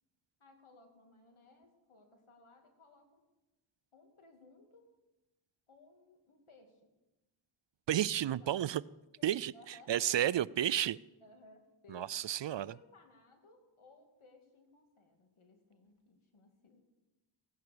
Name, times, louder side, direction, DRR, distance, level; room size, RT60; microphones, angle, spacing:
voice 1, 0.4-3.2 3.9-4.9 5.7-6.9 8.2-8.6 9.2-10.2 10.7-12.2 12.5-16.8, left 2 dB, 75° left, 4 dB, 2.8 m, -61 dB
voice 2, 7.9-8.8 9.2-9.5 9.9-11.0 11.9-12.7, right 11 dB, 60° right, 20 dB, 0.5 m, -31 dB
16.5 x 10.5 x 6.8 m, 1.0 s
wide cardioid pair, 75°, 49 cm